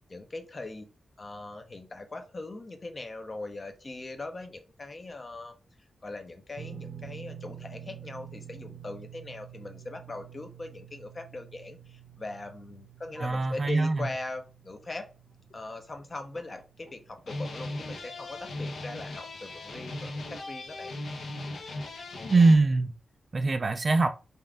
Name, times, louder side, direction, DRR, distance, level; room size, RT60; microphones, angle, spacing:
voice 1, 0.1-0.9 1.2-5.5 6.0-15.1 15.5-20.9, left 2 dB, 30° left, 0.7 m, -40 dB
sound 1, 6.5-18.8 19.0-19.3 21.0-21.1, right 9 dB, 80° right, 1.0 m, -48 dB
voice 2, 13.2-14.0 22.3-22.9 23.3-24.1, right 3 dB, 30° right, 0.4 m, -22 dB
sound 2, 15.5-15.6 16.2-16.9 17.2-22.6, left 2 dB, 70° left, 0.9 m, -38 dB
5.3 x 2.5 x 3.5 m
wide cardioid pair, 175°, 0 cm